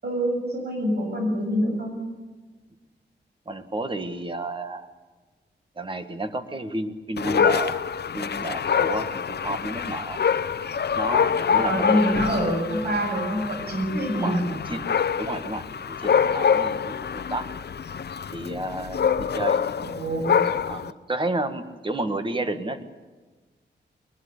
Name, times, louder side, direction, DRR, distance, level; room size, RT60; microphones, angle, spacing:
voice 1, 0.0-2.0 11.5-14.5 19.8-20.4, equal, 60° right, 2 dB, 7.9 m, -25 dB
voice 2, 3.5-4.9 5.8-7.8 8.1-10.2 11.0-12.5 12.8-13.2 14.1-14.9 15.2-17.5 18.3-19.7 20.7-22.8, right 2 dB, 25° right, 9 dB, 1.7 m, -31 dB
Dog, 7.2-20.9, left 7 dB, 65° left, 0.7 m, -25 dB
21.5 x 20.5 x 8.4 m, 1.3 s
wide cardioid pair, 170°, 19 cm